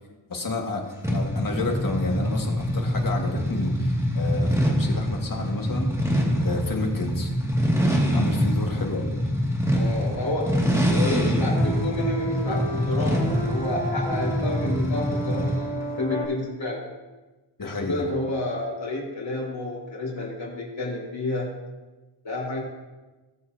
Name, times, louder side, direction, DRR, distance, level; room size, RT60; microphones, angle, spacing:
voice 1, 0.3-5.9 6.4-7.3 8.1-9.1 17.6-18.0, left 2 dB, 45° left, 1 dB, 2.0 m, -30 dB
sound 1, 1.0-15.7, equal, 5° right, 2.3 m, -25 dB
voice 2, 9.7-10.6 10.9-16.9 17.6-21.5 22.2-22.6, left 2 dB, 75° left, -4 dB, 4.3 m, -30 dB
sound 2, 10.5-16.2, right 1 dB, 25° left, 3.6 m, -32 dB
19.5 x 7.8 x 2.9 m, 1.2 s
wide cardioid pair, 105°, 46 cm